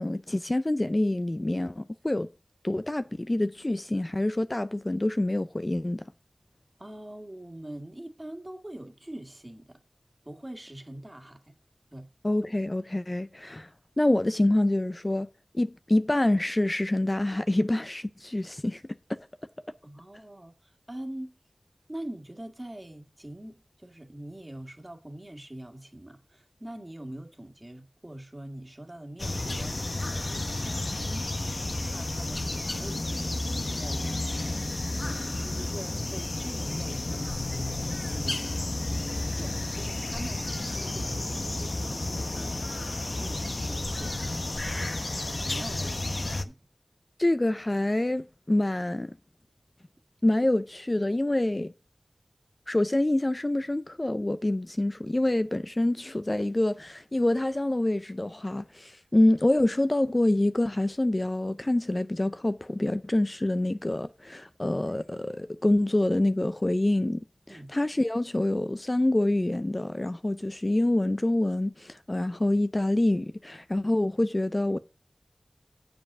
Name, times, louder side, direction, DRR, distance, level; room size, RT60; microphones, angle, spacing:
voice 1, 0.0-2.3 2.6-6.1 12.2-13.7 14.0-15.3 15.5-18.8 19.1-19.2 47.2-49.1 50.2-51.7 52.7-67.2 67.7-74.8, left 1 dB, 30° left, 0.4 m, -26 dB
voice 2, 6.8-9.8 10.2-11.5 11.9-12.1 19.8-21.3 21.9-34.7 35.0-38.6 39.4-42.1 42.3-42.8 43.2-44.1 45.2-46.6 67.5-67.7, right 1 dB, 25° right, 1.7 m, -43 dB
sound 1, 29.2-46.4, left 2 dB, 50° left, 0.7 m, -32 dB
7.6 x 5.1 x 6.0 m
wide cardioid pair, 50°, 0 cm